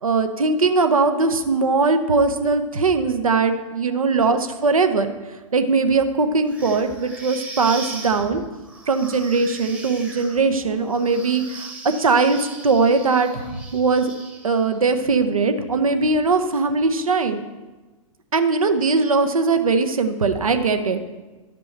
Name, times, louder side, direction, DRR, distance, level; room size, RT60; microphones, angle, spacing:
voice 1, 0.0-5.1 5.5-8.4 8.9-11.7 12.0-14.1 14.4-17.5 18.3-21.0, right 4 dB, 75° right, 7 dB, 0.8 m, -20 dB
sound 1, 6.5-14.8, right 3 dB, 5° right, 0.9 m, -39 dB
11.0 x 5.3 x 4.4 m, 1.2 s
figure-of-eight pair, 110°, 18 cm